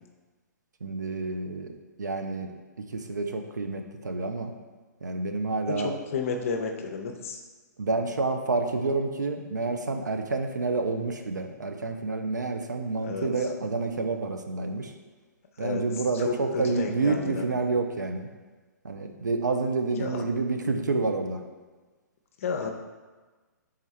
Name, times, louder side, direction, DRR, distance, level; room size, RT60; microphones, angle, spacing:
voice 1, 0.8-1.7 2.0-2.5 3.1-4.5 5.0-5.9 7.8-14.9 15.6-18.2 18.9-21.4, right 3 dB, 70° right, 5 dB, 0.4 m, -28 dB
voice 2, 5.7-7.4 13.0-13.5 15.6-17.5 20.0-20.2 22.4-22.7, left 5 dB, 45° left, 4 dB, 0.5 m, -32 dB
4.4 x 3.6 x 3.1 m, 1.3 s
figure-of-eight pair, 120°, 10 cm